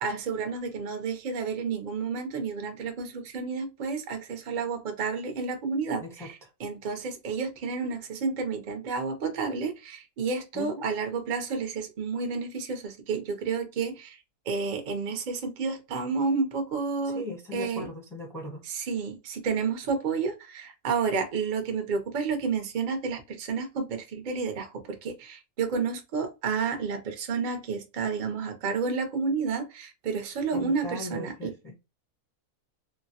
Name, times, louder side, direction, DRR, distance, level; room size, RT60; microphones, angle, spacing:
voice 1, 0.0-14.2 14.5-17.2 17.5-17.9 18.7-31.5, right 5 dB, 50° right, 0.6 m, -30 dB
voice 2, 6.0-6.5 10.5-10.9 17.0-18.6 30.5-31.7, left 1 dB, 5° left, 0.5 m, -39 dB
3.1 x 2.1 x 2.7 m
omnidirectional pair, 1.6 m